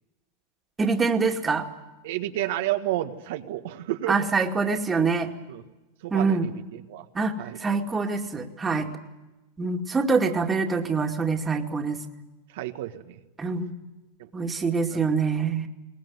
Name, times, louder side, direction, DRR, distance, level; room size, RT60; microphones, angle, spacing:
voice 1, 0.8-1.7 4.1-5.3 6.1-6.5 7.1-8.9 9.6-12.0 13.4-13.7 14.3-15.7, right 4 dB, 15° right, 4 dB, 2.4 m, -25 dB
voice 2, 2.0-4.1 5.5-5.6 6.0-7.0 7.4-7.6 8.7-8.9 12.5-13.1, right 14 dB, 70° right, 6 dB, 1.6 m, -31 dB
22.5 x 18.5 x 9.7 m, 1.1 s
supercardioid pair, 125°, 0 cm